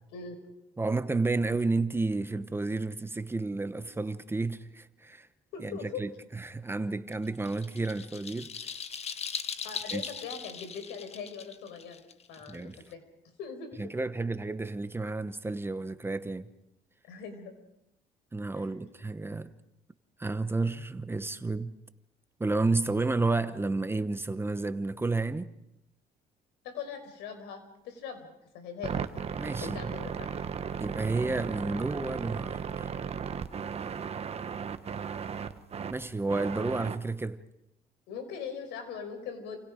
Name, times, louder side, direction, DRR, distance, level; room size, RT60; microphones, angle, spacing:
voice 1, 0.8-5.3 5.6-8.5 9.9-10.0 12.5-12.8 13.8-16.5 18.3-19.5 20.2-21.7 22.4-25.5 29.4-29.9 30.8-32.9 35.9-37.4, right 3 dB, 15° right, 1.0 m, -31 dB
voice 2, 5.5-6.0 9.6-12.0 12.3-13.0 13.4-13.8 17.0-17.5 18.6-18.7 26.6-29.0 29.6-30.3 38.1-39.6, left 6 dB, 90° left, 5.2 m, -41 dB
sound 1, 7.1-12.9, left 6 dB, 40° left, 1.3 m, -39 dB
sound 2, 28.8-37.0, right 7 dB, 35° right, 1.4 m, -35 dB
29.5 x 27.5 x 5.1 m
cardioid pair, 110°, 17 cm